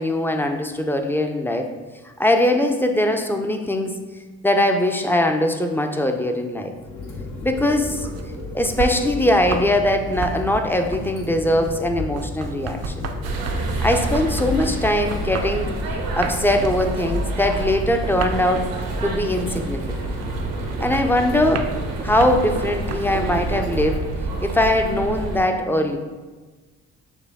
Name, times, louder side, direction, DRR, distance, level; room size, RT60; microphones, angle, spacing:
voice 1, 0.0-1.7 2.2-3.9 4.4-6.7 7.4-8.1 8.5-13.0 13.8-15.7 16.2-18.7 19.0-20.1 20.8-21.7 22.0-24.0 24.4-26.0, left 1 dB, 5° left, 5 dB, 0.5 m, -21 dB
sound 1, 6.8-24.4, left 3 dB, 70° left, 1.0 m, -33 dB
sound 2, 7.5-9.8 10.0-23.4, right 5 dB, 50° right, 0.5 m, -34 dB
sound 3, 13.2-25.4, right 3 dB, 80° right, 0.8 m, -29 dB
6.6 x 2.2 x 3.5 m, 1.3 s
supercardioid pair, 55°, 33 cm